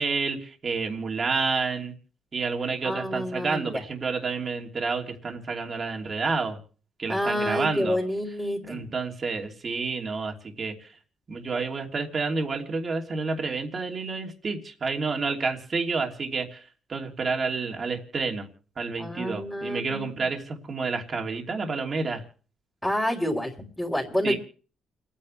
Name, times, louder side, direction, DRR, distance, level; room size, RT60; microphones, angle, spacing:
voice 1, 0.0-1.9 2.3-6.6 7.0-8.0 8.7-10.9 11.3-18.5 18.8-22.2 24.2-24.4, right 4 dB, 40° right, 2 dB, 2.9 m, -29 dB
voice 2, 2.8-3.8 7.1-8.9 19.0-20.3 22.8-24.4, left 1 dB, 5° left, -6 dB, 3.7 m, -29 dB
29.5 x 10.0 x 3.2 m, 0.41 s
cardioid pair, 90°, 0 cm